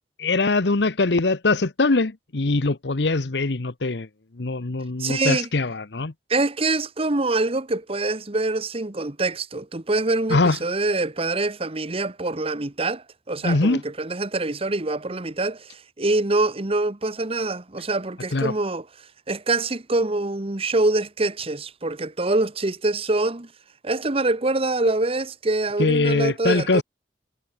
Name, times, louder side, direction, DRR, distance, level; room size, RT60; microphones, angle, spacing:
voice 1, 0.2-4.1 4.3-6.1 10.3-10.6 13.4-13.8 18.3-18.5 25.8-26.8, left 3 dB, 75° left, 1.0 m, -22 dB
voice 2, 5.0-5.5 6.3-18.8 19.3-23.5 23.8-26.8, right 2 dB, 35° right, 1.2 m, -25 dB
head